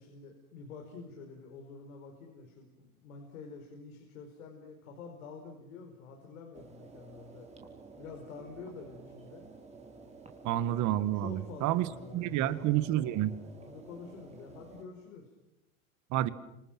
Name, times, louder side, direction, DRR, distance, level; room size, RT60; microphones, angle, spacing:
voice 1, 0.0-7.5 8.0-9.4 11.1-12.9 13.6-15.3, left 4 dB, 80° left, 3 dB, 4.9 m, -48 dB
sound 1, 6.5-14.8, right 3 dB, 15° right, 3.5 m, -52 dB
voice 2, 10.4-13.4 16.1-16.3, right 13 dB, 45° right, 14 dB, 1.7 m, -29 dB
29.5 x 26.5 x 6.1 m, 0.92 s
supercardioid pair, 115°, 41 cm